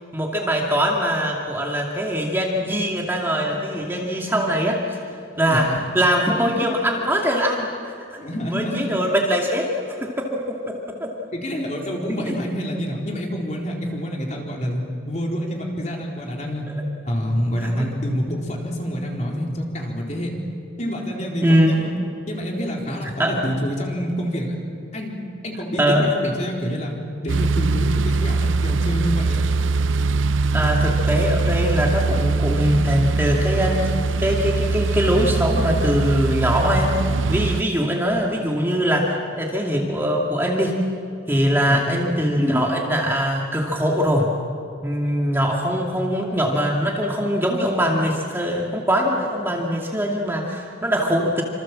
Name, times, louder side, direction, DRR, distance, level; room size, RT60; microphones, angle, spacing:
voice 1, 0.1-5.0 5.4-5.7 5.9-7.9 8.4-9.7 10.0-11.1 12.3-12.4 17.7-17.9 21.4-21.7 23.2-23.3 25.8-26.1 30.5-33.9 34.2-36.9 37.3-40.8 41.3-44.3 44.8-51.4, equal, 10° right, -1 dB, 2.4 m, -22 dB
voice 2, 5.5-5.8 8.2-8.8 11.3-14.8 15.1-16.7 17.0-20.3 20.8-21.9 22.3-24.6 24.9-25.2 25.4-27.0 27.2-29.4 41.6-42.0, equal, 35° left, -1 dB, 4.1 m, -27 dB
sound 1, 27.3-37.6, right 3 dB, 85° right, 0.6 m, -22 dB
28.0 x 26.5 x 7.6 m, 2.4 s
head